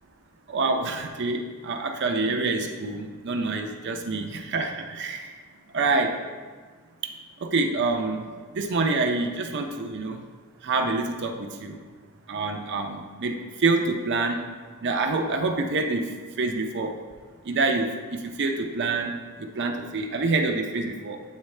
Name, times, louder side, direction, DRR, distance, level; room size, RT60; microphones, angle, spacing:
voice 1, 0.5-5.3 5.7-6.1 7.5-8.2 8.5-10.2 10.6-11.8 12.3-14.4 14.8-16.1 16.4-16.9 17.5-19.1 19.4-21.2, right 3 dB, 50° right, 3 dB, 0.6 m, -26 dB
8.4 x 4.0 x 3.2 m, 1.5 s
head